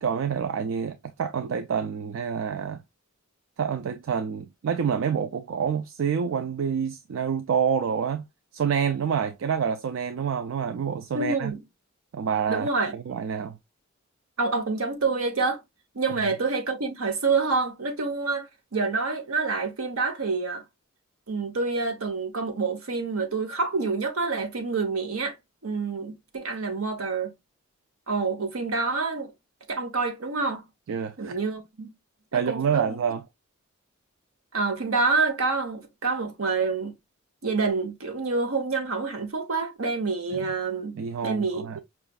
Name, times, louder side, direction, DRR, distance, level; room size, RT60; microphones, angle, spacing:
voice 1, 0.0-2.8 3.6-8.2 8.5-11.5 12.1-13.6 30.9-31.4 32.3-33.2 40.3-40.4 41.0-41.8, right 7 dB, 70° right, 0.3 m, -27 dB
voice 2, 11.1-11.6 12.5-12.9 14.4-15.6 15.9-20.6 21.3-25.4 25.6-27.3 28.1-29.3 29.7-30.6 31.2-31.9 32.3-33.0 34.5-36.9 37.4-41.0 41.2-41.8, right 4 dB, 85° right, 1.0 m, -27 dB
5.6 x 2.4 x 2.3 m
head